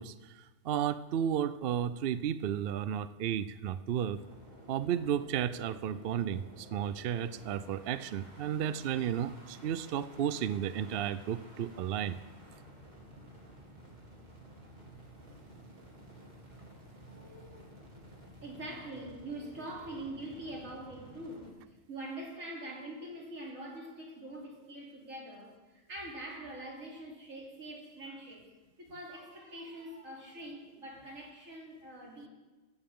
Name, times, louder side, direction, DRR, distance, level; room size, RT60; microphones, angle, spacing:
voice 1, 0.0-4.2 4.7-12.2, right 9 dB, 60° right, 14 dB, 0.6 m, -33 dB
sound 1, 4.0-21.5, right 1 dB, 35° right, 2.9 m, -53 dB
voice 2, 17.1-28.5 28.8-32.3, right 1 dB, 85° right, -3 dB, 3.6 m, -44 dB
15.5 x 15.5 x 3.7 m, 1.2 s
omnidirectional pair, 1.3 m